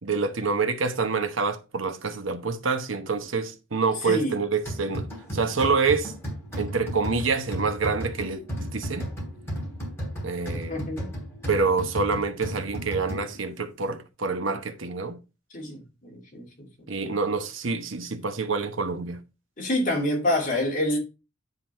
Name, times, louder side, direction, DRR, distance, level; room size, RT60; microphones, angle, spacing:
voice 1, 0.0-5.1 5.3-6.1 6.6-9.1 10.2-10.9 11.5-15.2 16.9-19.2, right 4 dB, 85° right, 1.0 m, -27 dB
voice 2, 4.0-4.4 10.7-11.0 15.5-16.7 19.6-21.0, left 1 dB, 45° left, 2.9 m, -27 dB
sound 1, 4.7-13.5, equal, 15° left, 3.1 m, -34 dB
9.7 x 4.0 x 4.4 m
head